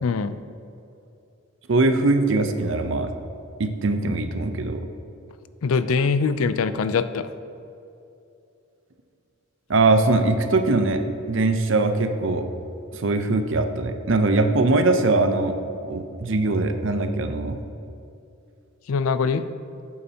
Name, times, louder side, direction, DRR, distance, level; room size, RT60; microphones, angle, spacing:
voice 1, 0.0-0.3 5.6-7.3 18.9-19.5, left 5 dB, 75° left, 13 dB, 0.4 m, -23 dB
voice 2, 1.7-3.1 3.6-4.9 9.7-11.0 11.3-12.4 12.9-15.5 15.9-17.6, right 2 dB, 60° right, 7 dB, 0.6 m, -21 dB
11.0 x 8.5 x 2.8 m, 2.7 s
head